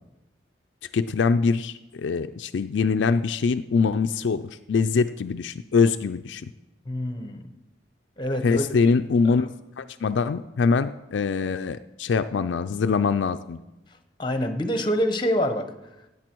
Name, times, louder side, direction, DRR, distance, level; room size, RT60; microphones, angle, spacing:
voice 1, 0.9-4.4 4.7-6.5 8.4-9.5 9.8-13.6, left 5 dB, 75° left, 9 dB, 0.4 m, -23 dB
voice 2, 6.8-7.5 8.2-8.7 14.2-15.7, equal, 25° left, 8 dB, 0.9 m, -26 dB
16.5 x 8.4 x 4.5 m, 1.0 s
head